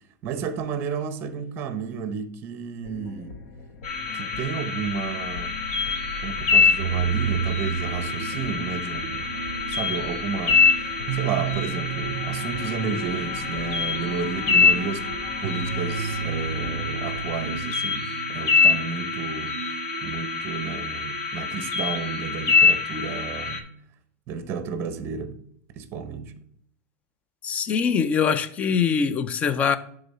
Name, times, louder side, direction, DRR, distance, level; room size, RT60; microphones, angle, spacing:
voice 1, 0.2-3.4 4.1-5.5 6.2-9.3 9.7-15.1 15.4-19.7 20.0-23.7 24.3-25.4 25.8-26.3, right 6 dB, 30° right, 0.8 m, -32 dB
sound 1, 2.8-17.6, left 3 dB, 85° left, 0.8 m, -40 dB
sound 2, 3.8-23.6, left 5 dB, 55° left, 1.4 m, -25 dB
sound 3, 6.8-22.4, right 9 dB, 90° right, 0.4 m, -33 dB
voice 2, 27.4-29.8, left 6 dB, 15° left, 0.3 m, -23 dB
11.0 x 3.8 x 4.1 m
supercardioid pair, 180°, 8 cm